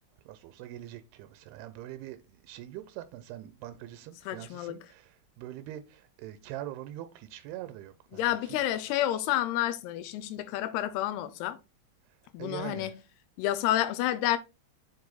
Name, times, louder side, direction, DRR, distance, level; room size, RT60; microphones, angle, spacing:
voice 1, 0.3-8.6 12.1-13.0, right 13 dB, 90° right, 2.6 m, -43 dB
voice 2, 4.3-4.8 8.1-11.6 12.3-12.9 13.4-14.4, left 13 dB, 90° left, 2.7 m, -29 dB
7.1 x 4.8 x 4.0 m
omnidirectional pair, 4.5 m